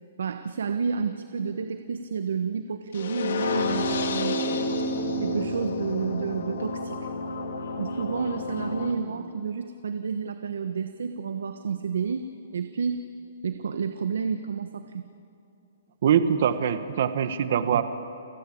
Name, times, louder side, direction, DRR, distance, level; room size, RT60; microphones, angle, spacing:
voice 1, 0.2-4.4 5.2-7.1 7.8-13.0 13.4-15.0, right 6 dB, 85° right, 9 dB, 1.2 m, -30 dB
sound 1, 2.9-8.9, left 2 dB, 60° left, 2.5 m, -29 dB
voice 2, 16.0-17.8, right 8 dB, 45° right, 11 dB, 1.3 m, -23 dB
30.0 x 19.0 x 8.6 m, 2.6 s
hypercardioid pair, 175°, 0 cm